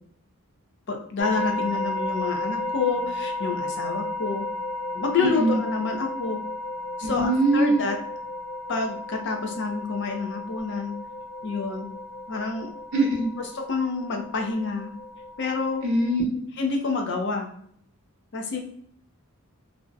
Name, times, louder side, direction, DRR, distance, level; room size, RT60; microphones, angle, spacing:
voice 1, 0.9-4.5 4.9-6.4 7.0-8.0 8.7-10.9 11.4-11.9 12.3-12.7 13.4-14.9 15.4-15.9 16.5-17.5 18.3-18.6, left 4 dB, 55° left, 3 dB, 0.5 m, -28 dB
sound 1, 1.2-16.2, left 2 dB, ahead, 0.6 m, -33 dB
voice 2, 7.1-7.8 12.9-13.2 15.8-16.2, right 1 dB, 55° right, -4 dB, 0.6 m, -21 dB
2.5 x 2.1 x 2.5 m, 0.63 s
head